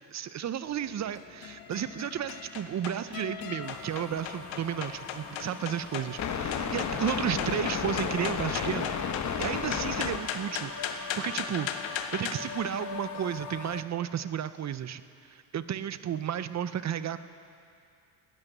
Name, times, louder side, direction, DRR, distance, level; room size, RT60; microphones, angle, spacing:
voice 1, 0.0-8.9 9.2-17.2, right 9 dB, 35° right, 14 dB, 0.5 m, -33 dB
sound 1, 0.6-12.4, left 7 dB, 65° left, 1.3 m, -38 dB
sound 2, 3.6-13.8, left 6 dB, 35° left, 1.0 m, -35 dB
18.0 x 12.0 x 6.7 m, 2.5 s
cardioid pair, 125°, 48 cm